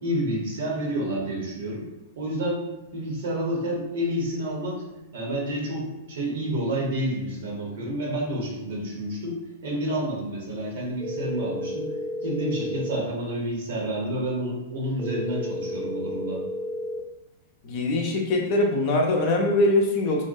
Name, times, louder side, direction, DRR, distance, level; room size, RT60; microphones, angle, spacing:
voice 1, 0.0-1.9 2.2-2.6 2.9-4.8 5.1-11.9 12.2-16.4, right 1 dB, 65° right, -3 dB, 0.9 m, -29 dB
sound 1, 11.0-13.0 15.0-17.0, left 1 dB, ahead, 0.6 m, -32 dB
voice 2, 17.6-20.2, left 2 dB, 45° left, 0 dB, 0.5 m, -22 dB
2.5 x 2.2 x 2.6 m, 1.0 s
figure-of-eight pair, 100°, 0 cm